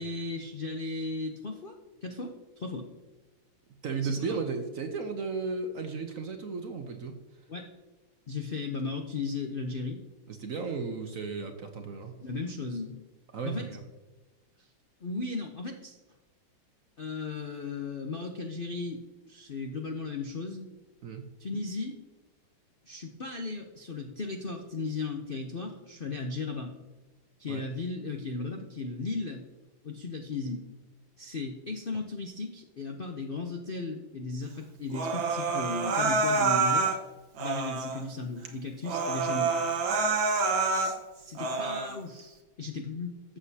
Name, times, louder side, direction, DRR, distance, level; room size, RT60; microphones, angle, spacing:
voice 1, 0.0-2.9 4.0-4.4 7.5-7.7 8.3-10.0 12.2-13.0 13.4-13.7 14.6-14.7 15.0-16.0 17.0-19.0 19.3-20.7 21.4-22.0 22.9-26.7 27.4-29.4 29.8-30.6 31.2-36.9 37.4-39.5 40.7-43.4, left 3 dB, 65° left, 3 dB, 0.5 m, -36 dB
voice 2, 3.8-7.2 10.3-12.1 13.3-13.8 21.0-21.3 27.5-27.6, right 4 dB, 60° right, 5 dB, 0.9 m, -34 dB
Human voice, 34.9-37.0 37.4-38.0 38.5-38.6 38.8-41.0 41.4-42.0, right 4 dB, 80° right, 1.8 m, -27 dB
12.5 x 7.9 x 2.8 m, 1.2 s
omnidirectional pair, 2.1 m